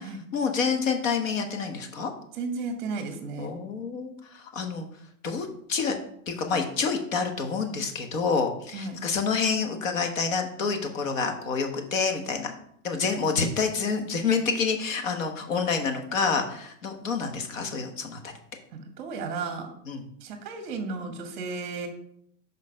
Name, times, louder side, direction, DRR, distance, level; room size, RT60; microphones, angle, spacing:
voice 1, 0.3-2.1 3.4-4.9 5.2-6.0 6.3-12.5 12.8-18.3 19.9-20.0, left 5 dB, 50° left, 5 dB, 1.4 m, -28 dB
voice 2, 2.3-3.5 8.7-9.0 18.7-19.7 20.2-21.9, right 4 dB, 30° right, 6 dB, 1.1 m, -34 dB
6.5 x 5.2 x 5.1 m, 0.70 s
supercardioid pair, 180°, 49 cm